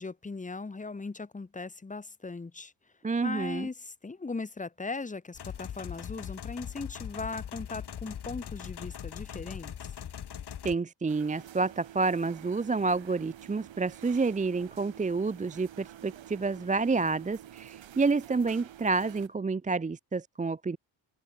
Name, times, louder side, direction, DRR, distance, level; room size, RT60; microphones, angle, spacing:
voice 1, 0.0-2.7 3.2-9.7, left 3 dB, 15° left, 1.6 m, -38 dB
voice 2, 3.0-3.7 10.6-20.8, right 4 dB, 15° right, 0.6 m, -29 dB
sound 1, 5.3-10.7, left 9 dB, 55° left, 4.6 m, -40 dB
sound 2, 11.1-19.3, right 11 dB, 75° right, 7.0 m, -49 dB
open air
cardioid pair, 130°, 46 cm